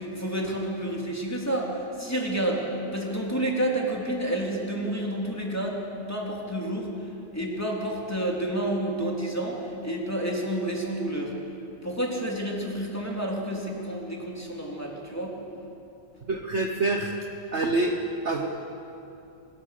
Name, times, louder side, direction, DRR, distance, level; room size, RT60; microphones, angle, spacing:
voice 1, 0.0-2.6 2.9-5.8 6.1-6.9 7.3-11.3 11.8-15.4, right 1 dB, 10° left, -2 dB, 3.4 m, -29 dB
voice 2, 16.3-17.2 17.5-17.9 18.2-18.5, right 2 dB, 40° right, 2 dB, 1.4 m, -26 dB
24.5 x 20.5 x 6.8 m, 2.7 s
omnidirectional pair, 2.0 m